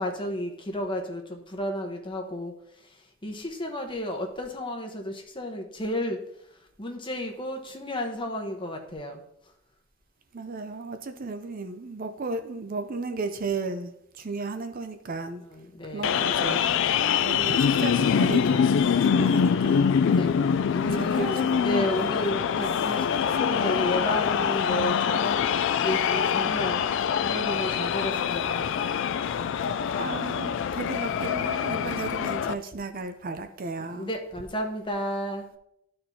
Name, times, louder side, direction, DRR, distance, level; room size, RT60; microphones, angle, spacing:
voice 1, 0.0-2.5 3.2-6.2 6.8-9.2 15.4-16.3 20.1-25.5 25.8-26.8 27.2-28.7 33.9-35.5, equal, 25° left, 1.0 m, -32 dB
voice 2, 10.3-13.9 14.2-15.4 15.9-16.6 17.2-18.7 19.0-19.9 21.0-21.6 30.0-34.1, right 3 dB, 45° right, 0.5 m, -34 dB
sound 1, 16.0-32.5, left 7 dB, 60° left, 0.3 m, -24 dB
12.5 x 4.4 x 2.7 m
head